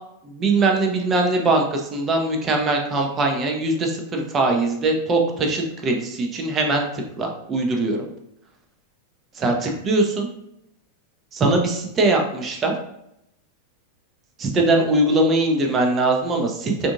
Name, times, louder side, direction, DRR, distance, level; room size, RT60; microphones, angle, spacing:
voice 1, 0.2-8.1 9.4-10.3 11.3-12.7 14.4-16.9, right 2 dB, 25° right, 2 dB, 0.5 m, -21 dB
3.5 x 2.6 x 2.4 m, 0.79 s
figure-of-eight pair, 90°, 0 cm